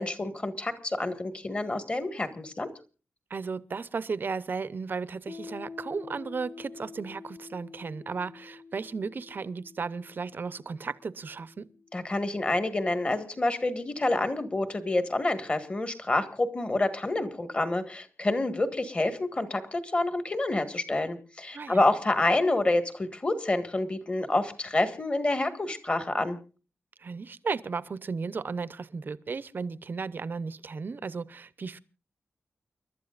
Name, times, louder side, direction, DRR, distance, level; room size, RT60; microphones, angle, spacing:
voice 1, 0.0-2.7 11.9-26.4, left 2 dB, 25° left, 1.7 m, -28 dB
voice 2, 3.3-11.7 21.5-21.8 27.0-31.8, right 4 dB, 45° right, 0.7 m, -35 dB
Piano, 5.3-12.5, left 4 dB, 45° left, 1.9 m, -47 dB
29.5 x 12.5 x 2.5 m
wide cardioid pair, 155°, 5 cm